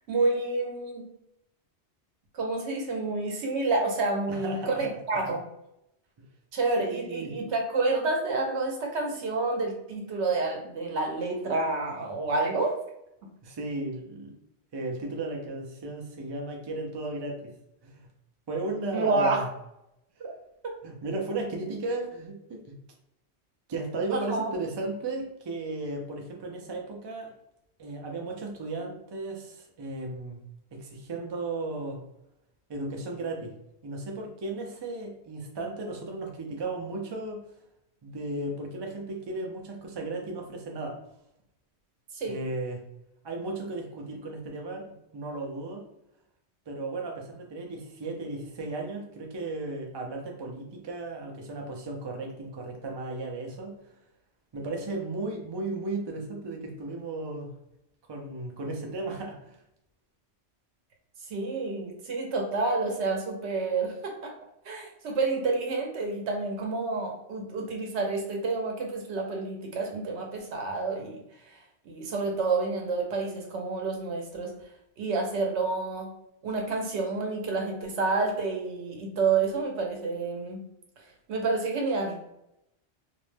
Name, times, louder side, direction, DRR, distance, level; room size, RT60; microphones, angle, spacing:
voice 1, 0.1-1.0 2.3-5.4 6.5-12.8 18.9-19.4 20.2-20.3 24.1-24.5 42.1-42.4 61.3-64.3 64.7-71.2 71.9-74.5 75.0-76.1 76.4-80.6 81.3-82.2, right 3 dB, 80° right, 1 dB, 1.0 m, -29 dB
voice 2, 4.3-5.3 6.8-7.3 13.4-14.3 14.7-17.5 17.8-18.1 18.5-19.5 20.8-22.7 23.7-27.3 27.8-30.4 30.7-32.0 32.7-33.5 33.8-37.4 38.0-41.0 42.3-42.8 43.2-45.8 46.7-53.7 54.5-57.5 58.1-59.6, right 2 dB, 45° right, 1 dB, 0.3 m, -35 dB
2.6 x 2.1 x 3.2 m, 0.82 s
omnidirectional pair, 1.1 m